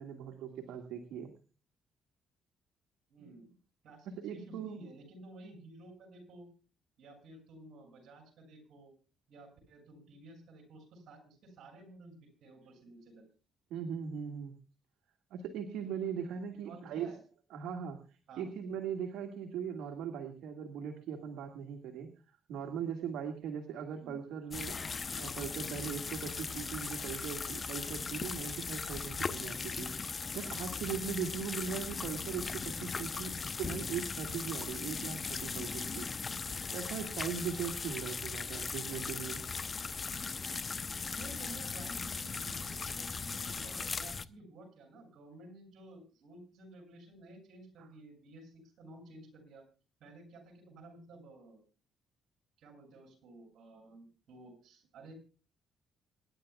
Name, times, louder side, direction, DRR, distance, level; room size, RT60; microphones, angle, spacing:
voice 1, 0.0-1.3 4.1-4.8 13.7-14.5 15.3-17.1 17.5-36.1 36.7-39.4 47.8-47.9, right 7 dB, 85° right, 4 dB, 2.0 m, -40 dB
voice 2, 3.1-3.5 3.8-6.5 7.0-8.9 9.3-13.2 16.5-17.2 18.3-18.4 24.0-24.2 41.1-49.6 50.0-51.6 52.6-55.1, right 2 dB, 70° right, 2 dB, 7.8 m, -53 dB
sound 1, 24.5-44.2, left 5 dB, 35° left, 0.8 m, -38 dB
26.0 x 11.5 x 2.4 m, 0.35 s
cardioid pair, 90°, 0 cm